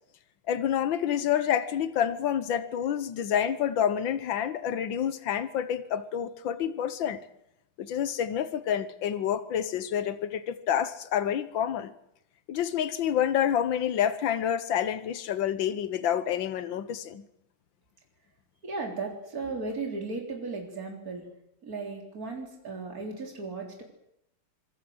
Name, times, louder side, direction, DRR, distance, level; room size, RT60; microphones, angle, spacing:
voice 1, 0.5-7.2 7.8-11.9 12.5-17.2, left 9 dB, 80° left, 13 dB, 1.9 m, -28 dB
voice 2, 18.6-21.3 21.6-23.8, right 3 dB, 50° right, 1 dB, 4.2 m, -36 dB
25.5 x 21.5 x 7.8 m, 0.80 s
omnidirectional pair, 2.0 m